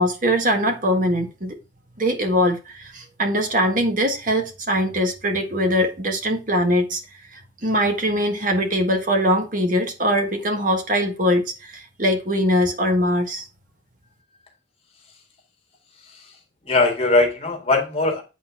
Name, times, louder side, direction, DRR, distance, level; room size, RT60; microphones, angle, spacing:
voice 1, 0.0-1.6 2.0-7.0 7.3-13.5, equal, 45° right, 1.6 m, -22 dB
voice 2, 16.7-18.2, left 2 dB, 30° left, 2.0 m, -20 dB
8.6 x 4.2 x 5.8 m
head